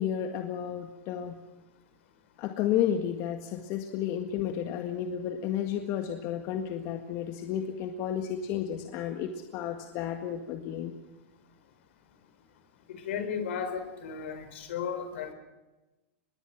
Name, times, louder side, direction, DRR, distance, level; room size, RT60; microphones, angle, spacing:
voice 1, 0.0-1.4 2.4-10.9, left 9 dB, 50° left, 5 dB, 1.8 m, -32 dB
voice 2, 12.9-15.3, left 7 dB, 75° left, 10 dB, 4.3 m, -34 dB
25.0 x 21.0 x 6.1 m, 1.1 s
hypercardioid pair, 120°, 7 cm